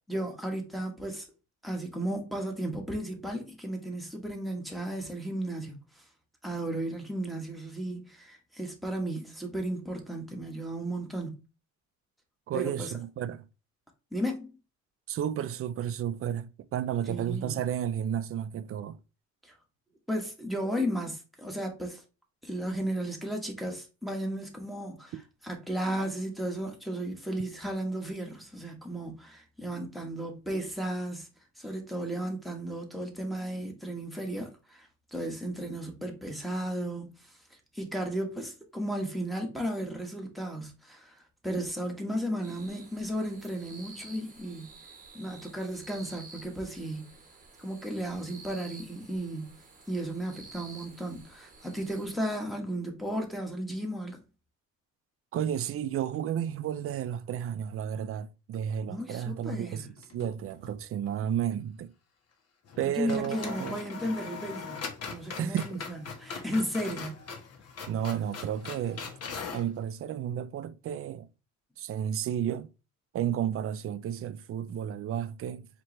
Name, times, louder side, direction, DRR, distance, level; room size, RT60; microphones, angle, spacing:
voice 1, 0.1-1.3 1.6-5.8 6.4-11.4 12.5-13.0 14.1-14.5 17.1-17.6 19.4-19.5 20.1-22.0 22.4-25.1 25.4-31.3 31.6-37.3 37.7-41.2 41.4-44.7 45.1-47.1 47.6-49.5 49.9-54.2 58.9-59.9 62.8-67.2, right 1 dB, ahead, 1.2 m, -34 dB
voice 2, 12.5-13.5 15.1-19.0 25.1-25.2 55.3-61.9 62.8-63.8 65.4-65.8 67.9-69.0 69.5-71.3 71.8-72.7 73.1-75.7, right 9 dB, 45° right, 0.4 m, -32 dB
sound 1, 42.4-52.1, right 3 dB, 25° right, 1.0 m, -51 dB
sound 2, 60.0-60.8 61.1-61.2 62.6-62.8 63.1-69.7, left 5 dB, 50° left, 1.0 m, -41 dB
4.4 x 3.0 x 3.1 m
cardioid pair, 100°, 32 cm